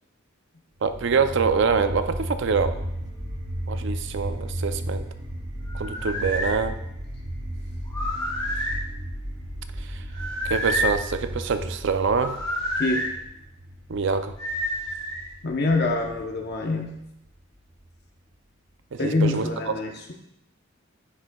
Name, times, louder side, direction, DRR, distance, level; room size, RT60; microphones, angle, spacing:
voice 1, 0.8-2.8 3.7-5.0 5.8-6.8 10.4-12.4 13.9-14.3 18.9-19.4, right 5 dB, 60° right, 10 dB, 0.5 m, -25 dB
sound 1, 0.9-17.9, equal, 85° right, 2.3 m, -34 dB
sound 2, 5.7-6.5 7.9-8.8 10.1-11.0 12.1-13.1 14.4-15.3, equal, 20° left, 2.5 m, -29 dB
voice 2, 12.8-13.1 15.4-17.0 19.0-20.1, left 2 dB, 50° left, 2 dB, 0.9 m, -25 dB
9.4 x 6.2 x 2.3 m, 0.83 s
head